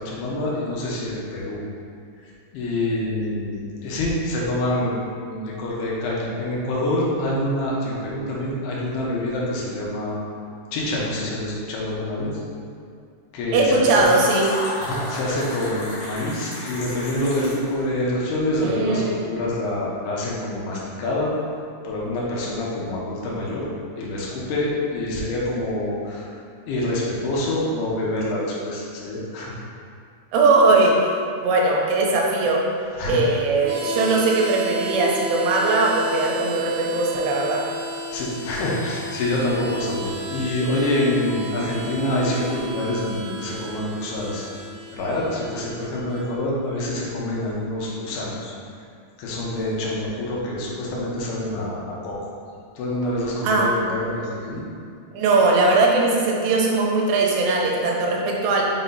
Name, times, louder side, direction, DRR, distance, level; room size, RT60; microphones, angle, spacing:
voice 1, 0.0-1.6 2.5-10.2 10.7-12.3 13.3-14.0 14.8-21.3 21.8-23.6 24.0-26.3 26.7-29.5 33.0-33.2 38.1-44.4 44.9-48.5 49.2-52.1 52.8-54.6, left 1 dB, 75° left, -5 dB, 2.8 m, -26 dB
voice 2, 13.5-14.5 18.6-19.2 30.3-31.0 31.4-32.6 33.0-37.6 53.4-53.7 55.1-58.6, right 3 dB, 90° right, -2 dB, 2.8 m, -19 dB
Fill (with liquid), 13.9-17.7, left 1 dB, 55° left, 1.8 m, -33 dB
Harmonica, 33.6-46.2, right 2 dB, 70° right, 2.2 m, -33 dB
6.1 x 5.6 x 2.8 m, 2.4 s
omnidirectional pair, 5.0 m